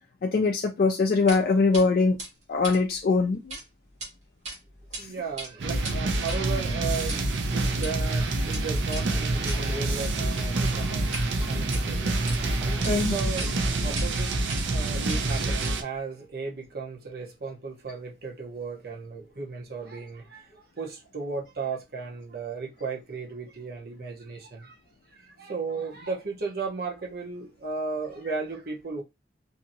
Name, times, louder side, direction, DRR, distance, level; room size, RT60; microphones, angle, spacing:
voice 1, 0.2-2.2 2.5-3.6 5.0-5.1 12.9-13.1, left 4 dB, 55° left, 0.3 m, -22 dB
sound 1, 1.3-1.4 1.7-1.9 2.2-3.6 3.9-4.1 4.4-5.0 5.3-11.3 11.6-12.4 12.8-12.9 13.4-13.5 14.0-14.1 14.5-14.8 15.1-16.0, right 2 dB, 40° right, 1.2 m, -39 dB
voice 2, 4.9-12.4 12.6-14.3 14.7-24.8 25.1-29.0, right 4 dB, 60° right, 0.9 m, -35 dB
sound 2, 5.6-15.8, right 2 dB, 85° right, 0.5 m, -27 dB
sound 3, 8.9-14.1, equal, 10° right, 0.6 m, -43 dB
2.8 x 2.7 x 2.7 m
head